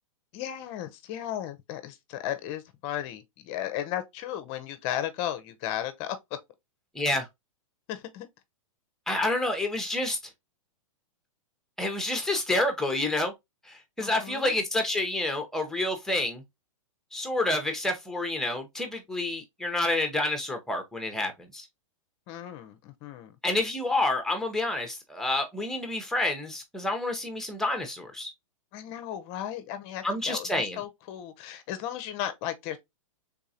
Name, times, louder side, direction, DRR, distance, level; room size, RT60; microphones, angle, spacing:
voice 1, 0.3-6.2 7.9-8.3 14.0-14.6 22.3-23.4 28.7-32.8, left 11 dB, 35° left, 0.6 m, -35 dB
voice 2, 6.9-7.3 9.1-10.2 11.8-13.3 13.7-16.4 17.1-21.6 23.4-28.3 30.0-30.8, left 2 dB, 5° left, 0.8 m, -28 dB
3.6 x 3.5 x 2.7 m
hypercardioid pair, 145°, 17 cm